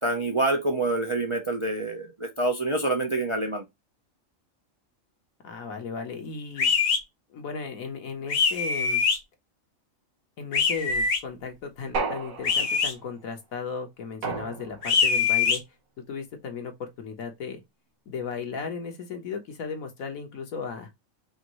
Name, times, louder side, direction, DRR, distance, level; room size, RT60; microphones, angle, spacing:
voice 1, 0.0-3.6, right 2 dB, 35° right, 0.5 m, -26 dB
voice 2, 5.4-6.7 7.3-9.0 10.4-15.6 16.1-17.6 18.1-20.9, left 5 dB, 85° left, 1.6 m, -36 dB
sound 1, 6.6-7.0 8.3-9.2 10.5-11.2 12.4-12.9 14.8-15.6, left 5 dB, 50° left, 0.9 m, -23 dB
sound 2, 11.9-12.9 14.2-15.1, right 4 dB, 90° right, 1.6 m, -32 dB
5.1 x 2.6 x 3.0 m
omnidirectional pair, 1.4 m